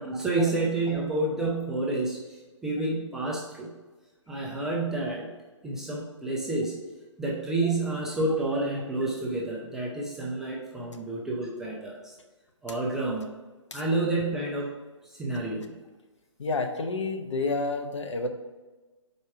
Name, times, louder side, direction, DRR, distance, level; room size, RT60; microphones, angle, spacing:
voice 1, 0.0-3.7 4.3-5.3 5.6-6.8 7.2-12.1 12.6-13.2 13.7-14.7 15.1-15.7, right 2 dB, 5° right, -5 dB, 0.4 m, -29 dB
voice 2, 16.4-18.3, left 3 dB, 65° left, 6 dB, 0.8 m, -29 dB
5.1 x 4.2 x 4.6 m, 1.2 s
figure-of-eight pair, 145°, 16 cm